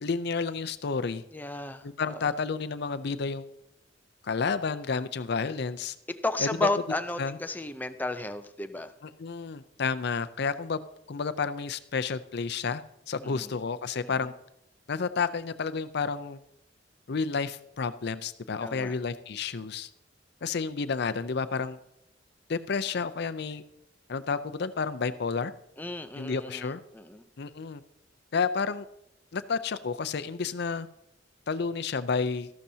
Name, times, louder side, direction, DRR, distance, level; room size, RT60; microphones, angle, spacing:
voice 1, 0.0-1.2 1.8-3.5 4.2-6.0 6.4-6.5 7.2-7.4 9.0-10.8 11.1-14.3 14.9-16.4 17.1-19.9 20.4-21.8 22.5-23.6 24.1-25.5 26.1-26.8 27.4-27.8 28.3-28.9 29.3-30.9 31.5-32.5, left 5 dB, 60° left, 12 dB, 0.6 m, -31 dB
voice 2, 1.3-2.3 6.2-8.9 13.2-13.5 14.0-14.1 18.6-18.9 25.8-27.2, left 2 dB, 10° left, 8 dB, 0.6 m, -33 dB
13.5 x 11.5 x 2.8 m, 0.79 s
head